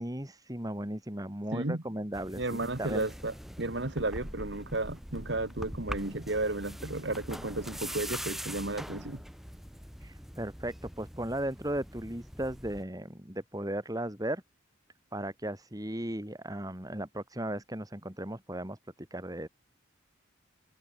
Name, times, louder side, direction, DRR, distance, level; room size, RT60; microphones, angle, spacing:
voice 1, 0.0-3.0 10.0-14.4 15.1-18.8 19.1-19.5, right 1 dB, 20° right, 2.5 m, -36 dB
voice 2, 1.5-1.8 2.4-9.2, right 2 dB, 60° right, 1.9 m, -33 dB
sound 1, 2.1-12.8, equal, ahead, 3.0 m, -43 dB
head